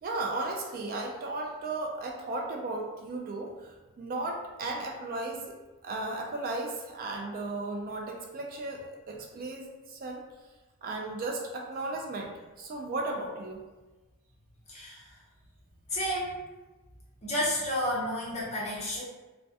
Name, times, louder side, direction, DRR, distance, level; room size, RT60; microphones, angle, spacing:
voice 1, 0.0-5.5 5.8-10.2 10.8-13.6, right 2 dB, 40° right, 0 dB, 0.3 m, -35 dB
voice 2, 14.7-15.1 15.9-16.4 17.2-19.0, left 1 dB, 30° left, -6 dB, 0.7 m, -31 dB
2.2 x 2.1 x 2.6 m, 1.2 s
head